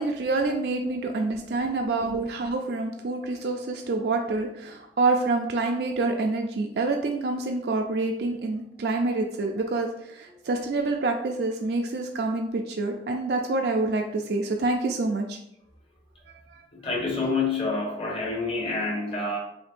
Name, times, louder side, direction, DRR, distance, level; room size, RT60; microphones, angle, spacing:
voice 1, 0.0-15.4 16.5-16.6, right 3 dB, 65° right, 3 dB, 0.4 m, -27 dB
voice 2, 16.7-19.4, left 3 dB, 30° left, -1 dB, 1.1 m, -28 dB
7.1 x 2.6 x 2.5 m, 0.77 s
head